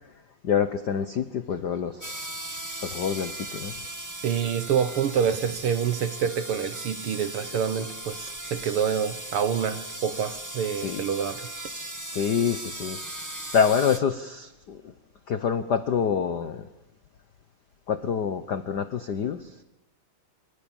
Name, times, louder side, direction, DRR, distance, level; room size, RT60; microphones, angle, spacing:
voice 1, 0.4-2.1 2.8-3.7 10.8-11.0 12.1-13.0 13.5-14.8 15.3-16.6 17.9-19.5, left 7 dB, 80° left, 0.9 m, -26 dB
sound 1, 2.0-14.0, right 1 dB, 10° right, 0.9 m, -38 dB
voice 2, 4.2-11.5, right 8 dB, 60° right, 1.6 m, -27 dB
25.0 x 24.5 x 7.2 m
omnidirectional pair, 3.4 m